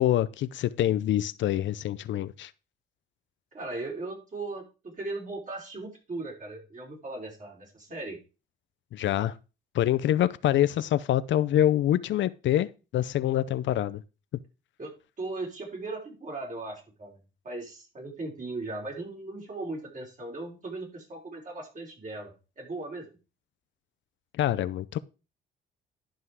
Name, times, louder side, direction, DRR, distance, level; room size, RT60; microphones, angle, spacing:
voice 1, 0.0-2.5 8.9-9.4 9.7-12.7 12.9-14.0 24.4-25.0, left 12 dB, 70° left, 0.6 m, -25 dB
voice 2, 3.5-8.2 14.8-17.2 17.4-23.1, right 2 dB, 40° right, 5.1 m, -38 dB
11.5 x 5.6 x 4.7 m
cardioid pair, 90°, 20 cm